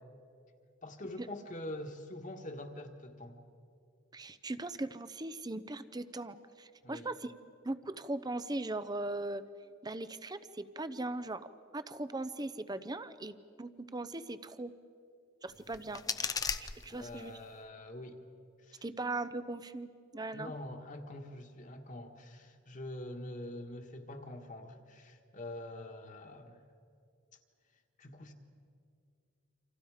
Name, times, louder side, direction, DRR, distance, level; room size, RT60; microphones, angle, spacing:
voice 1, 0.8-3.4 6.8-7.1 16.9-18.2 18.6-18.8 20.3-26.6 28.0-28.3, left 1 dB, 40° left, 4 dB, 1.8 m, -45 dB
voice 2, 4.1-7.3 7.6-9.4 9.8-14.7 15.4-16.0 16.6-17.4 18.8-19.9 20.1-20.5, right 2 dB, 20° right, 13 dB, 0.8 m, -39 dB
sound 1, 15.5-17.5, left 5 dB, 20° left, 0.6 m, -38 dB
29.0 x 26.5 x 5.0 m, 2.4 s
head